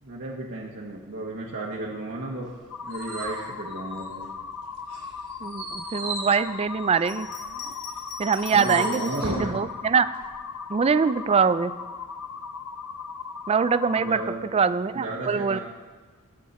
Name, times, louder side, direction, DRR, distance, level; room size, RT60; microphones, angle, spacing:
voice 1, 0.0-2.5 2.8-4.3 8.5-9.7 13.9-14.4 14.9-15.6, right 2 dB, 55° right, -3 dB, 1.4 m, -34 dB
sound 1, 2.5-4.5 4.9-9.5, right 3 dB, 85° right, 3.7 m, -36 dB
sound 2, 2.7-14.3, left 6 dB, 90° left, 0.8 m, -38 dB
voice 2, 5.4-7.3 8.2-10.1 10.7-11.7 13.5-14.2 14.5-15.6, right 5 dB, 25° right, 14 dB, 0.3 m, -23 dB
Bell, 6.9-9.4 10.1-11.1, left 5 dB, 35° left, 2.0 m, -41 dB
19.0 x 7.6 x 4.3 m, 1.4 s
head